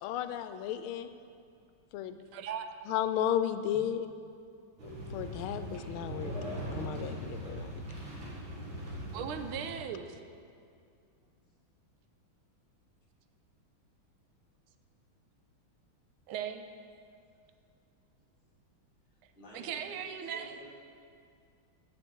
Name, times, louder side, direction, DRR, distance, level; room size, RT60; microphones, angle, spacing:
voice 1, 0.0-1.1 1.9-2.2 2.9-4.1 5.1-7.7, left 10 dB, 85° left, 10 dB, 1.5 m, -34 dB
voice 2, 2.3-2.7 8.9-10.2 16.3-16.7 19.5-20.6, right 8 dB, 90° right, 8 dB, 1.5 m, -38 dB
sound 1, 4.8-9.8, equal, 65° right, 2.6 m, -40 dB
voice 3, 19.3-20.7, equal, 25° left, -7 dB, 2.6 m, -52 dB
14.5 x 6.4 x 4.5 m, 2.3 s
omnidirectional pair, 2.3 m